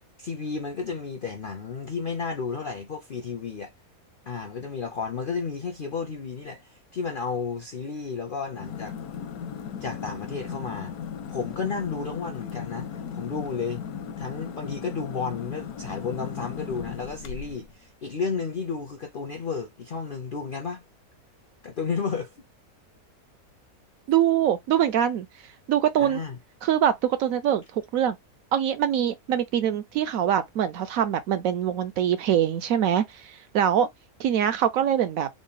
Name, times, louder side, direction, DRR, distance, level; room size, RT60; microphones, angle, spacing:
voice 1, 0.2-3.7 4.3-9.0 9.8-10.9 11.3-13.8 14.2-20.8 21.6-22.3 26.0-26.4, left 5 dB, 60° left, 0.5 m, -32 dB
sound 1, 8.5-17.7, left 7 dB, 85° left, 1.1 m, -37 dB
voice 2, 24.1-25.3 25.7-26.2 26.6-28.2 28.5-33.0 33.5-33.9 34.2-35.3, right 10 dB, 75° right, 1.0 m, -23 dB
3.8 x 2.1 x 3.7 m
omnidirectional pair, 1.6 m